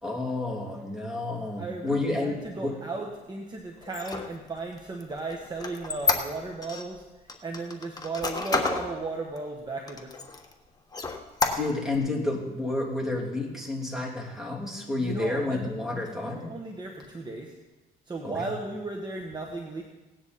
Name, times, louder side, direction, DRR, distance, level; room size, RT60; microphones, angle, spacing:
voice 1, 0.0-2.8 11.4-16.5 18.2-18.5, left 2 dB, 5° right, -1 dB, 3.0 m, -30 dB
voice 2, 1.6-10.2 15.0-17.5 18.1-19.8, right 3 dB, 25° right, 1 dB, 1.4 m, -36 dB
Squeak, 3.8-6.8 7.3-8.9 9.4-9.5 9.9-10.5 10.9-12.0, left 4 dB, 20° left, 1.3 m, -29 dB
17.5 x 9.8 x 4.2 m, 1.1 s
cardioid pair, 110°, 17 cm